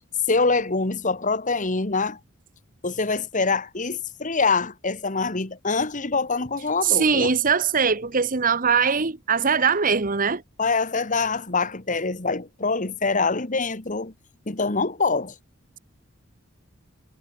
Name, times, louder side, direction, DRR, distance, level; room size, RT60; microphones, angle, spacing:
voice 1, 0.3-2.2 2.8-7.3 10.6-14.1 14.5-15.3, left 4 dB, 35° left, 1.6 m, -24 dB
voice 2, 6.8-10.4, right 6 dB, 40° right, 1.1 m, -21 dB
head